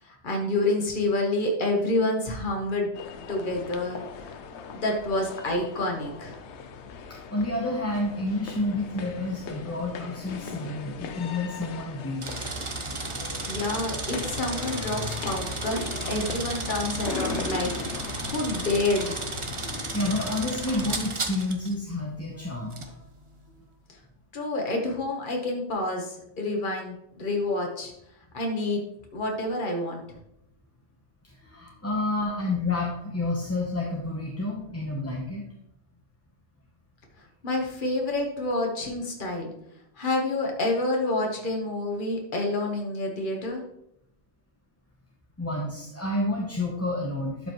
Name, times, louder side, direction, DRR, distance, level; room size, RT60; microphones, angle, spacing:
voice 1, 0.0-2.9 3.3-4.0 4.7-6.4 13.5-17.7 18.2-19.2 24.3-27.9 28.3-28.8 29.1-30.0 37.4-39.5 40.0-43.6, left 2 dB, 50° left, 1 dB, 1.5 m, -28 dB
sound 1, 2.9-21.0, left 6 dB, 90° left, 1.0 m, -39 dB
voice 2, 7.1-12.3 17.9-18.3 19.9-23.0 23.5-23.6 31.2-35.4 45.4-47.5, left 2 dB, 15° left, -2 dB, 0.9 m, -30 dB
sound 2, 12.2-21.7 22.7-22.9, right 3 dB, 30° right, 0.7 m, -34 dB
11.5 x 5.2 x 3.1 m, 0.79 s
omnidirectional pair, 1.1 m